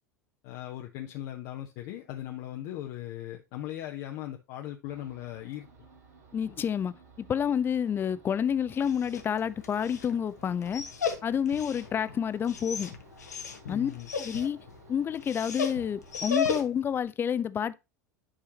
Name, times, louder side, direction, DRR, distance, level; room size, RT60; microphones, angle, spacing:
voice 1, 0.4-5.7 13.6-14.1, left 13 dB, 50° left, 0.9 m, -39 dB
sound 1, 4.8-16.3, right 5 dB, 65° right, 5.1 m, -57 dB
voice 2, 6.3-10.8 11.2-12.9 13.7-13.9 14.2-17.7, left 8 dB, 25° left, 0.5 m, -29 dB
Dog, 8.7-17.0, left 5 dB, 75° left, 1.2 m, -36 dB
10.0 x 4.8 x 2.9 m
figure-of-eight pair, 80°, 9 cm